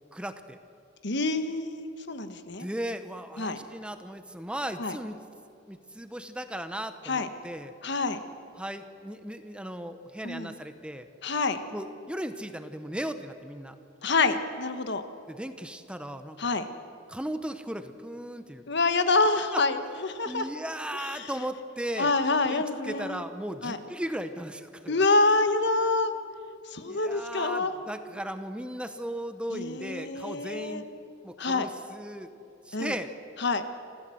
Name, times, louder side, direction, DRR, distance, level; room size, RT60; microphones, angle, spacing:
voice 1, 0.1-0.6 2.6-5.2 5.7-7.7 8.6-11.1 11.7-13.7 15.3-16.5 17.1-18.6 19.3-19.6 20.3-22.1 22.5-25.0 26.9-30.9 31.2-32.3 32.7-33.1, right 1 dB, 5° right, 9 dB, 0.9 m, -36 dB
voice 2, 1.0-2.7 3.4-3.6 4.8-4.9 7.0-7.3 7.8-8.2 10.2-10.5 11.2-11.6 14.0-15.0 16.4-16.7 18.7-20.5 20.9-21.3 22.0-23.2 23.6-23.8 24.9-26.1 26.7-27.7 29.5-30.8 31.4-31.7 32.7-32.9 33.4-33.6, left 3 dB, 65° left, 10 dB, 1.3 m, -27 dB
27.0 x 15.0 x 7.8 m, 2.6 s
head